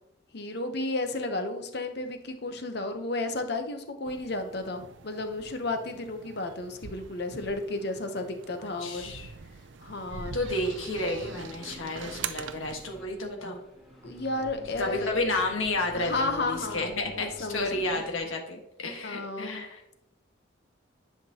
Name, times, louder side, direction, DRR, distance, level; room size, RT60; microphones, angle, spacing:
voice 1, 0.3-9.1 9.8-10.4 14.0-15.1 15.9-18.0 19.0-19.6, left 2 dB, 55° left, 6 dB, 0.8 m, -33 dB
sound 1, 4.1-12.9, right 6 dB, 70° right, 0.5 m, -43 dB
voice 2, 8.8-9.3 10.3-13.6 14.8-19.8, left 2 dB, 85° left, 2 dB, 1.4 m, -31 dB
sound 2, 10.3-18.3, equal, ahead, 2.3 m, -48 dB
10.5 x 5.9 x 2.8 m, 0.87 s
head